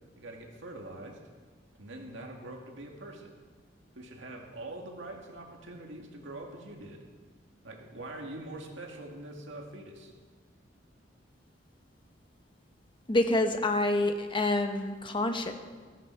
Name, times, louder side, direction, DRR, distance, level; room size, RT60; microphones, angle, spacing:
voice 1, 0.2-1.2 1.7-3.3 3.9-7.0 7.6-10.1, right 1 dB, 75° right, 1 dB, 2.2 m, -44 dB
voice 2, 13.1-15.5, left 2 dB, 25° left, 6 dB, 1.1 m, -27 dB
15.0 x 13.5 x 4.6 m, 1.4 s
head